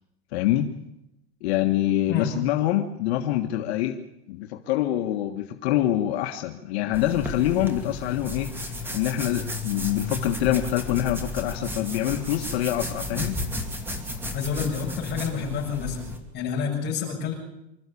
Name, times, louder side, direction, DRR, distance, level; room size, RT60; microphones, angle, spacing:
voice 1, 0.3-0.7 1.4-4.0 4.3-13.4, left 13 dB, 70° left, 4 dB, 1.6 m, -25 dB
sound 1, 6.9-16.2, left 2 dB, 5° right, 2.6 m, -33 dB
voice 2, 14.3-16.0 16.3-17.3, left 6 dB, 30° left, -1 dB, 7.5 m, -28 dB
26.0 x 13.5 x 8.5 m, 0.85 s
supercardioid pair, 160°, 33 cm